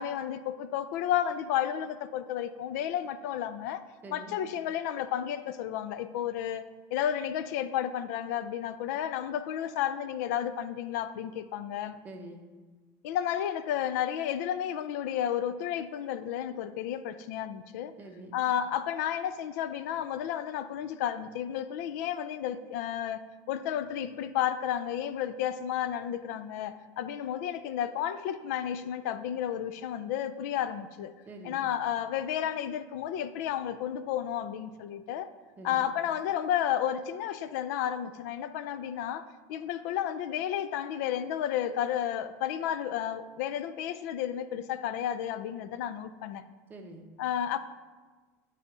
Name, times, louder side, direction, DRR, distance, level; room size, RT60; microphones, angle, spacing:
voice 1, 0.0-3.8 4.1-6.6 6.9-12.0 13.0-17.9 18.3-23.2 23.5-31.1 31.4-35.3 35.6-39.2 39.5-46.4 47.2-47.6, left 10 dB, 85° left, 12 dB, 0.5 m, -32 dB
voice 2, 4.0-4.4 12.0-12.4 18.0-18.4 31.3-31.6 35.6-35.9 46.7-47.0, right 1 dB, 20° right, 2 dB, 0.9 m, -45 dB
10.5 x 4.2 x 4.8 m, 1.3 s
cardioid pair, 150°, 9 cm